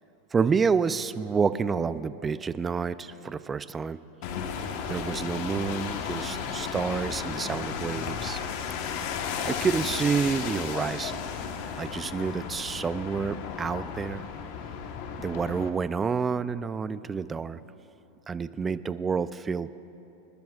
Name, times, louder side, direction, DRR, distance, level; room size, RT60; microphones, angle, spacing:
voice 1, 0.3-4.0 4.9-8.4 9.4-11.2 11.8-14.2 15.2-17.6 18.3-19.8, right 5 dB, 20° right, 14 dB, 0.4 m, -29 dB
sound 1, 4.2-15.7, left 6 dB, 60° left, 1.2 m, -34 dB
27.5 x 12.0 x 2.4 m, 3.0 s
hypercardioid pair, 115°, 0 cm